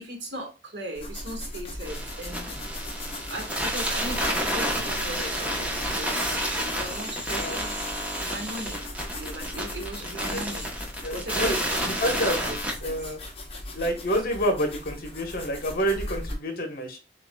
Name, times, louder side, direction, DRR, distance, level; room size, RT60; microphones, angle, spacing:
voice 1, 0.0-2.6 2.9-7.9 8.2-8.9 9.1-10.7 11.1-12.6 12.8-13.1, right 1 dB, 85° right, 1.5 m, -38 dB
sound 1, 0.9-16.3, left 1 dB, 30° left, 1.0 m, -38 dB
sound 2, 1.9-12.7, equal, 10° right, 0.9 m, -30 dB
voice 2, 11.0-12.4 12.8-13.2 13.7-17.0, equal, 55° left, 1.2 m, -28 dB
6.8 x 2.5 x 2.3 m
head